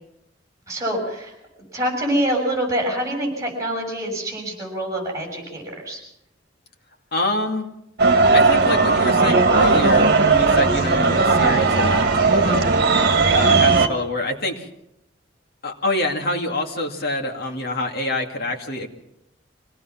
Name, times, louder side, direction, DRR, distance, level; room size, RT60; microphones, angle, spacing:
voice 1, 0.7-1.4 1.7-6.0, right 1 dB, 15° right, 0 dB, 6.5 m, -25 dB
voice 2, 7.1-7.7 8.3-12.6 13.3-14.7 15.6-18.9, left 2 dB, 55° left, 2 dB, 2.5 m, -26 dB
sound 1, 8.0-13.9, right 4 dB, 55° right, 1.8 m, -17 dB
25.0 x 18.0 x 5.9 m, 0.82 s
head